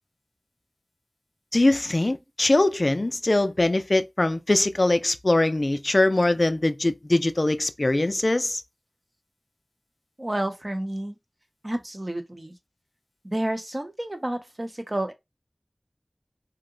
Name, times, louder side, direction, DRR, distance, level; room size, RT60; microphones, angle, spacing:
voice 1, 1.5-8.6, left 2 dB, 55° left, 0.3 m, -22 dB
voice 2, 10.2-11.2 11.6-12.5 13.2-15.1, right 1 dB, 40° right, 0.7 m, -30 dB
2.8 x 2.1 x 3.7 m
wide cardioid pair, 40°, 0 cm